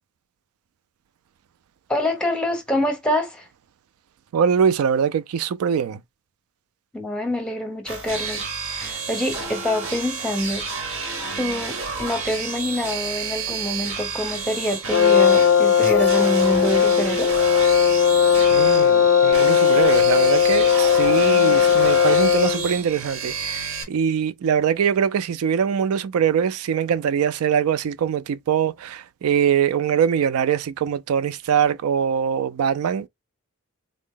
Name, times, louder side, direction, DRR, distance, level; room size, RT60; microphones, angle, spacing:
voice 1, 1.9-3.5 6.9-10.9 11.4-17.3, left 1 dB, 5° left, 0.9 m, -26 dB
voice 2, 4.3-6.0 18.5-33.1, right 7 dB, 80° right, 0.3 m, -22 dB
sound 1, 7.9-23.8, right 4 dB, 65° right, 1.5 m, -30 dB
Brass instrument, 14.9-22.7, left 7 dB, 60° left, 0.4 m, -17 dB
3.7 x 2.0 x 3.7 m
head